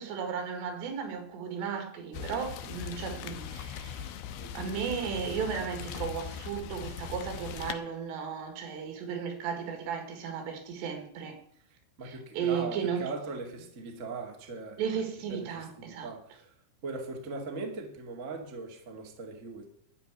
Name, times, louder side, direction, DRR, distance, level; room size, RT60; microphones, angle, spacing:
voice 1, 0.0-4.1 4.6-11.4 12.0-13.0 14.8-16.1, right 7 dB, 80° right, 4.1 m, -35 dB
Rain, 2.1-7.7, left 8 dB, 75° left, 2.4 m, -40 dB
voice 2, 4.4-4.9 12.0-14.8 15.3-16.5 16.8-19.7, right 3 dB, 30° right, 1.4 m, -40 dB
13.0 x 6.0 x 9.6 m
omnidirectional pair, 5.0 m